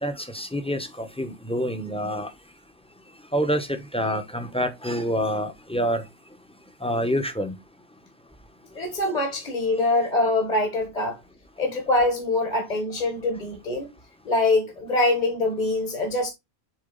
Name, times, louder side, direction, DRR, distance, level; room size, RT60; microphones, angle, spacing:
voice 1, 0.0-2.3 3.3-3.7 3.9-6.0 6.8-7.5, equal, 5° left, 0.8 m, -27 dB
voice 2, 8.7-11.2 11.6-13.9 14.2-16.3, left 2 dB, 40° left, 1.4 m, -24 dB
7.2 x 4.0 x 3.9 m
omnidirectional pair, 1.1 m